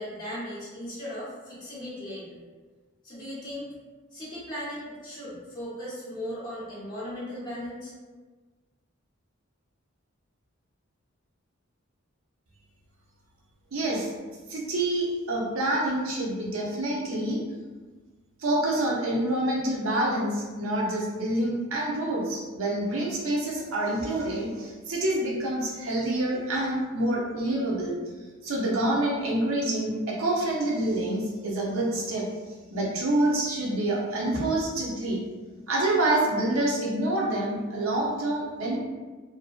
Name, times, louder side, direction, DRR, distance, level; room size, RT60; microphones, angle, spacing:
voice 1, 0.0-2.4 3.0-3.7 4.1-7.9, equal, 20° left, -9 dB, 0.9 m, -37 dB
voice 2, 13.7-14.1 14.5-17.4 18.4-28.0 28.4-32.3 32.7-35.2 35.7-38.8, right 1 dB, 80° right, -3 dB, 0.6 m, -27 dB
2.5 x 2.2 x 2.4 m, 1.3 s
head